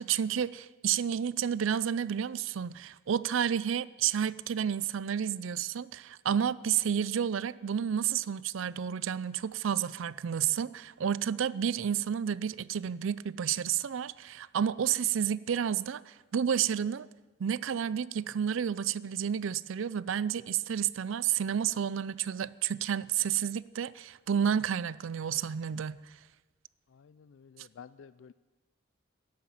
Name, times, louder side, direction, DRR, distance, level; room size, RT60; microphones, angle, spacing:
voice 1, 0.0-17.1 17.4-26.0, right 8 dB, 70° right, 19 dB, 0.4 m, -30 dB
voice 2, 26.9-28.3, left 7 dB, 65° left, 16 dB, 0.3 m, -52 dB
11.5 x 11.5 x 7.4 m, 1.2 s
head